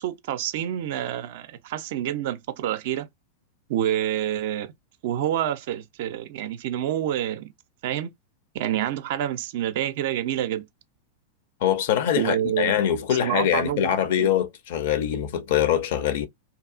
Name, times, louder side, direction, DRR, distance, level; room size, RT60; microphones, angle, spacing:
voice 1, 0.0-3.1 3.7-4.7 5.0-7.5 7.8-8.1 8.5-10.7 12.1-12.8 13.1-14.3, right 11 dB, 50° right, 0.4 m, -28 dB
voice 2, 11.6-16.3, left 10 dB, 55° left, 0.5 m, -23 dB
2.8 x 2.3 x 2.4 m
figure-of-eight pair, 90°, 0 cm